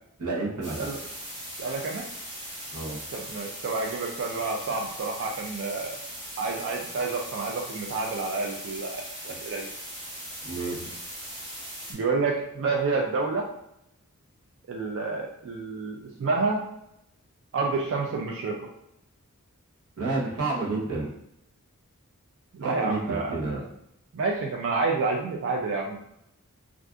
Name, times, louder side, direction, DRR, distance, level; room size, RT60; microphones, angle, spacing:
voice 1, 0.2-0.9 2.7-3.0 9.3-9.4 10.4-10.9 20.0-21.1 22.6-23.6, right 3 dB, 90° right, -3 dB, 0.9 m, -30 dB
sound 1, 0.6-11.9, equal, 30° right, 1.1 m, -39 dB
voice 2, 1.6-2.1 3.1-6.0 6.4-9.7 11.9-13.5 14.7-16.7 17.5-18.7 22.5-23.4 24.1-26.0, right 3 dB, 55° right, 1 dB, 0.3 m, -29 dB
2.4 x 2.4 x 3.6 m, 0.79 s
head